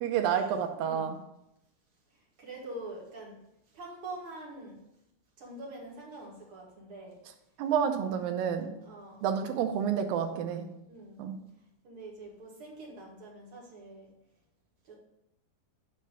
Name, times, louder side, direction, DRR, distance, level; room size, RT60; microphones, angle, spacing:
voice 1, 0.0-1.2 7.6-8.7 9.2-10.6 11.2-11.4, right 8 dB, 85° right, 6 dB, 2.6 m, -29 dB
voice 2, 0.8-1.1 2.4-3.4 3.7-4.8 5.4-7.2 8.9-9.2 10.2-10.4 10.9-11.2 11.8-14.1 14.8-14.9, right 2 dB, 45° right, -3 dB, 2.3 m, -45 dB
9.7 x 3.3 x 6.7 m, 0.84 s
omnidirectional pair, 4.0 m